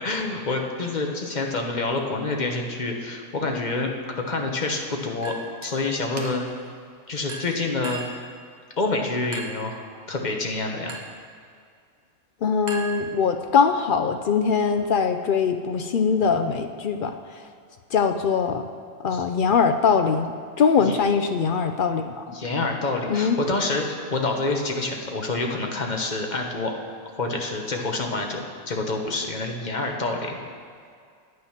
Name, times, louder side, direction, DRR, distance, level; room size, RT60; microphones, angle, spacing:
voice 1, 0.0-3.9 4.3-5.3 5.6-6.4 7.1-8.0 8.8-11.0 19.1-19.2 20.8-21.0 22.3-26.7 27.1-30.4, left 3 dB, 35° left, 2 dB, 1.1 m, -27 dB
Chink clink, 5.2-5.7 6.2-6.6 7.3-8.3 9.3-9.7 10.9-11.2 12.7-13.5, right 3 dB, 35° right, 1.1 m, -37 dB
voice 2, 12.4-17.2 17.9-18.6 19.0-22.2 23.1-23.4, left 6 dB, 65° left, 7 dB, 0.5 m, -22 dB
9.6 x 9.0 x 5.8 m, 2.2 s
omnidirectional pair, 1.4 m